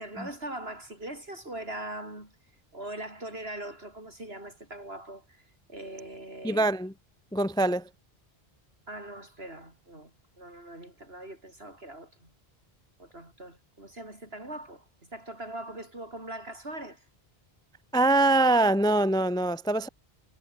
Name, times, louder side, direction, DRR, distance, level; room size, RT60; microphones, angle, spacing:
voice 1, 0.0-2.3 2.7-5.4 5.7-6.7 8.9-10.1 10.4-12.3 13.0-14.9 15.1-17.0, right 1 dB, 75° right, 7.4 m, -41 dB
voice 2, 6.4-6.9 7.3-7.9 17.9-19.9, right 2 dB, 5° left, 0.4 m, -23 dB
omnidirectional pair, 1.0 m